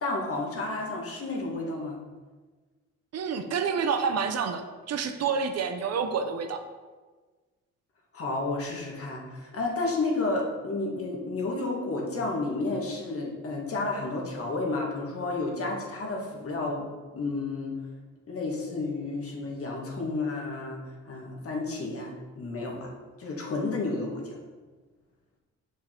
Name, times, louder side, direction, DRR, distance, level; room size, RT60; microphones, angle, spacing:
voice 1, 0.0-2.0 8.1-16.9 17.1-17.8 18.3-20.8 21.1-22.9 23.2-24.4, left 3 dB, 50° left, -1 dB, 1.8 m, -31 dB
voice 2, 3.1-6.6, right 6 dB, 55° right, 7 dB, 0.8 m, -28 dB
5.9 x 5.6 x 4.4 m, 1.4 s
cardioid pair, 90°, 30 cm